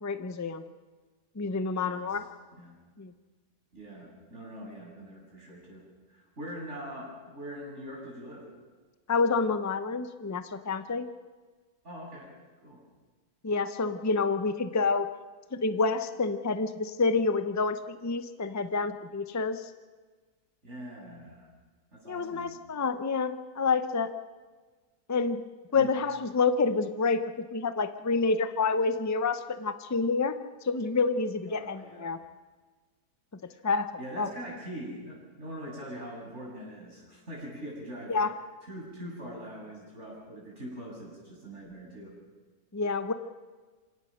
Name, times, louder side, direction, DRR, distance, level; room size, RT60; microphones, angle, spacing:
voice 1, 0.0-0.6 1.4-2.3 3.0-3.1 9.1-11.1 13.4-15.1 15.5-19.7 22.1-24.1 25.1-25.4 25.7-30.4 30.6-32.2 33.4-33.9 34.2-34.3 38.1-38.3 42.7-43.1, left 4 dB, 20° left, 10 dB, 0.5 m, -28 dB
voice 2, 1.8-2.2 2.6-2.7 3.7-8.4 11.8-12.3 12.6-12.8 20.6-21.5 21.9-22.5 25.7-25.9 31.5-32.1 33.5-33.6 34.0-38.3 38.7-42.1, equal, 45° right, -4 dB, 7.4 m, -42 dB
27.5 x 17.5 x 6.5 m, 1.4 s
omnidirectional pair, 1.8 m